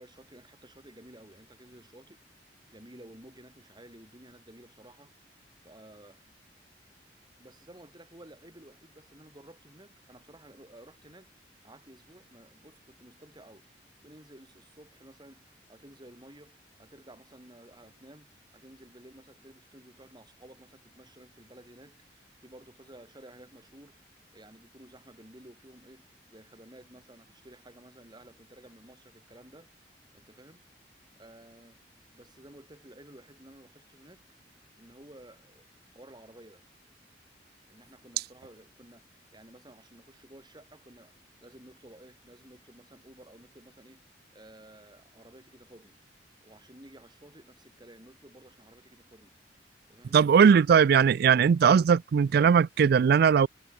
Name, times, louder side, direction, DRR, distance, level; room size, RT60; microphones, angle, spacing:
voice 1, 0.0-2.2 2.7-5.1 5.6-6.3 7.4-13.7 14.0-24.0 24.3-26.0 26.3-29.7 30.1-30.7 31.2-31.8 32.1-34.3 34.8-35.7 35.9-36.6 37.7-39.0 39.3-41.2 41.4-44.0 44.3-46.0 46.4-49.3 49.9-50.2, right 1 dB, 25° right, 6.2 m, -53 dB
voice 2, 50.1-53.5, right 7 dB, 60° right, 0.3 m, -20 dB
head